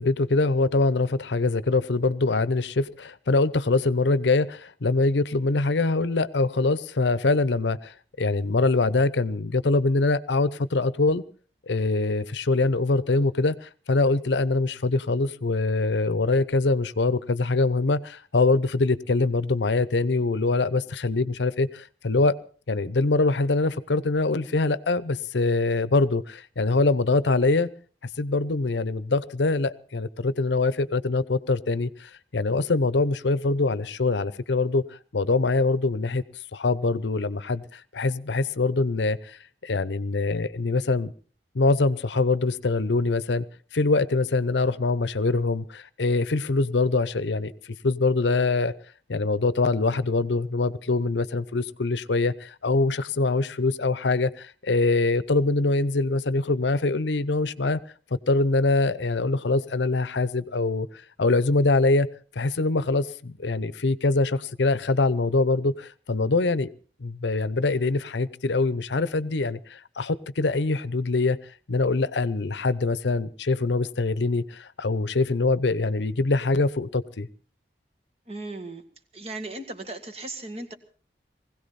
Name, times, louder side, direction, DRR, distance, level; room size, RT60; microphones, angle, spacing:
voice 1, 0.0-11.2 11.7-22.4 22.7-27.7 28.2-34.8 35.1-36.2 36.5-41.1 41.5-43.4 43.7-47.5 47.8-48.7 49.1-57.8 58.1-62.1 62.4-66.7 67.0-71.4 71.7-77.3, left 3 dB, 85° left, 17 dB, 0.8 m, -24 dB
voice 2, 78.3-78.8 79.1-80.7, right 2 dB, 35° right, 7 dB, 1.8 m, -36 dB
20.5 x 16.5 x 4.2 m, 0.41 s
head